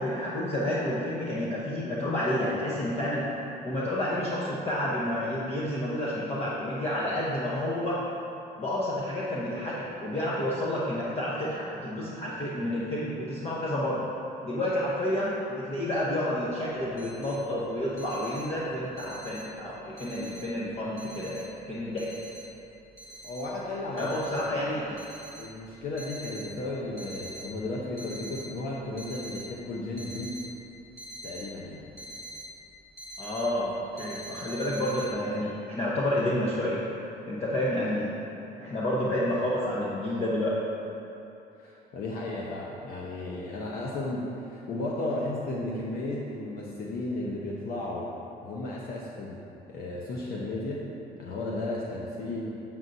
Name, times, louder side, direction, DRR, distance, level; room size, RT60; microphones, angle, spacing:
voice 1, 0.0-3.3 3.6-8.1 8.6-14.1 14.4-22.1 24.0-25.0 33.2-36.8 37.3-38.1 38.5-40.6, left 1 dB, 35° left, -7 dB, 1.0 m, -30 dB
sound 1, 16.4-16.5 16.7-17.4 17.7-19.6 20.0-20.7 21.0-22.6 23.0-23.5 24.0-24.5 24.9-26.5 26.9-27.5 27.8-28.5 28.8-29.5 30.0-32.5 32.7-33.5 34.0-35.1, right 1 dB, 15° left, 1.5 m, -44 dB
voice 2, 23.2-24.1 24.4-24.5 25.4-30.3 31.2-31.9 41.6-48.1 48.4-49.4 49.7-50.9 51.2-52.5, left 2 dB, 60° left, -4 dB, 0.9 m, -34 dB
7.7 x 7.1 x 2.7 m, 2.9 s
cardioid pair, 110°, 17 cm